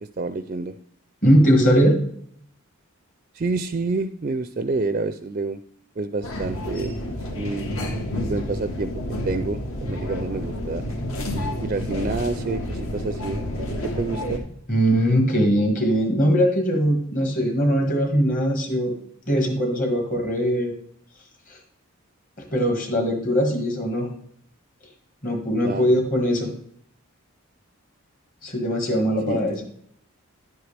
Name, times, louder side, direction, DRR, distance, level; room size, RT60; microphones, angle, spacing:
voice 1, 0.2-0.7 3.3-5.6 6.0-6.9 7.3-8.0 8.3-8.9 9.2-10.8 11.6-13.6 14.0-14.4 25.6-26.0 29.3-29.6, right 3 dB, 35° right, 10 dB, 0.4 m, -28 dB
voice 2, 1.2-2.0 14.7-18.9 19.3-20.7 22.4-24.1 25.2-26.5 28.4-29.6, equal, 35° left, 3 dB, 1.7 m, -20 dB
sound 1, 6.2-14.4, left 1 dB, 70° left, 1.7 m, -29 dB
10.5 x 7.9 x 3.4 m, 0.65 s
head